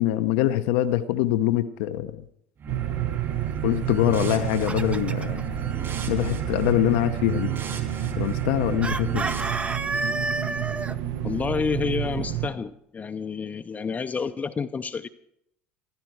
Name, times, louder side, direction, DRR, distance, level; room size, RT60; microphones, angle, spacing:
voice 1, 0.0-2.2 3.6-5.4 6.1-7.5 8.2-9.2, left 13 dB, 70° left, 10 dB, 0.7 m, -24 dB
sound 1, 2.6-9.4, right 6 dB, 45° right, 3.2 m, -35 dB
sound 2, 2.7-12.5, right 12 dB, 65° right, 0.9 m, -30 dB
Chicken rooster, 4.2-5.4 8.8-10.9, right 3 dB, 20° right, 0.7 m, -30 dB
voice 2, 11.2-15.1, left 5 dB, 25° left, 7 dB, 0.6 m, -29 dB
15.0 x 12.5 x 4.7 m, 0.76 s
hypercardioid pair, 75°, 6 cm